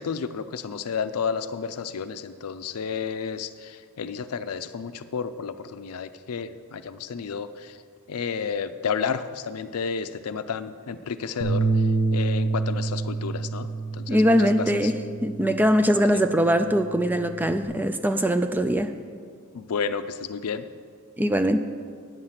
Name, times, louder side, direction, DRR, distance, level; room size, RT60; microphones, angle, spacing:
voice 1, 0.0-7.8 8.1-14.9 16.0-16.2 19.5-20.6, left 6 dB, 80° left, 11 dB, 0.5 m, -31 dB
Bass guitar, 11.4-15.9 16.3-17.7, right 3 dB, 75° right, 1.2 m, -28 dB
voice 2, 14.1-18.9 21.2-21.6, equal, 10° right, 9 dB, 0.3 m, -22 dB
9.7 x 7.8 x 5.8 m, 2.1 s
head